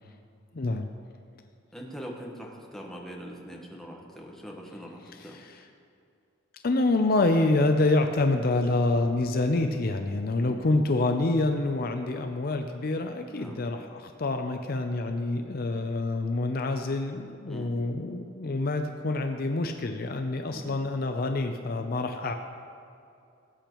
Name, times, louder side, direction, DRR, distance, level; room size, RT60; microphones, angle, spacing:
voice 1, 0.5-0.9 5.1-5.7 6.6-22.3, left 2 dB, 50° left, 6 dB, 0.5 m, -27 dB
voice 2, 1.7-5.4 10.4-10.6 13.3-13.6 17.5-17.8 20.5-20.8, equal, ahead, -1 dB, 1.2 m, -42 dB
18.5 x 8.7 x 3.0 m, 2.5 s
head